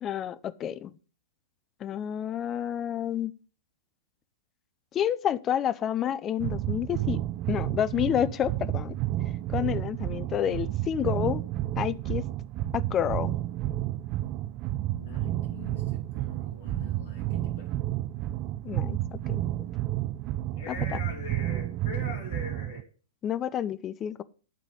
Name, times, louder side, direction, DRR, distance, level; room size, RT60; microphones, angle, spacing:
voice 1, 0.0-0.9 1.8-3.3 4.9-7.2 7.5-8.9 9.5-11.4 11.8-12.2 12.7-13.3 18.6-19.0 19.3-19.4 20.7-21.0 23.2-24.2, left 10 dB, 25° left, 0.4 m, -29 dB
sound 1, 6.4-22.8, right 14 dB, 35° right, 0.4 m, -31 dB
voice 2, 15.0-17.7 20.5-22.9, left 4 dB, 50° left, 2.8 m, -43 dB
11.0 x 4.0 x 6.5 m
figure-of-eight pair, 105°, 0 cm